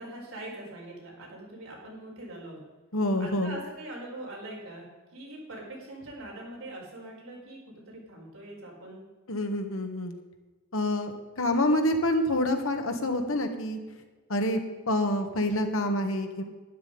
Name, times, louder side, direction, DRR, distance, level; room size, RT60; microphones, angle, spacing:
voice 1, 0.0-2.6 3.2-4.8 5.1-9.0, right 1 dB, 70° right, -3 dB, 4.9 m, -42 dB
voice 2, 2.9-3.5 9.3-10.2 10.7-13.8 14.3-14.6 14.9-16.4, left 1 dB, 65° left, 6 dB, 1.6 m, -27 dB
12.0 x 10.5 x 5.4 m, 1.3 s
head